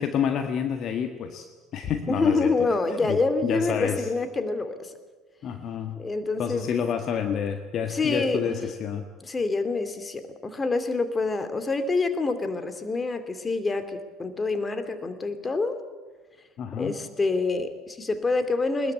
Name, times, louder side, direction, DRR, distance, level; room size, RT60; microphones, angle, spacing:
voice 1, 0.0-1.5 1.7-2.5 3.1-4.1 5.4-6.0 6.4-9.1 16.6-17.0, left 7 dB, 45° left, 7 dB, 1.6 m, -28 dB
voice 2, 2.1-4.9 6.0-6.7 7.9-8.6 9.2-15.8 16.8-18.9, left 3 dB, 20° left, 9 dB, 2.7 m, -27 dB
21.5 x 20.5 x 8.5 m, 1.3 s
figure-of-eight pair, 65°, 0 cm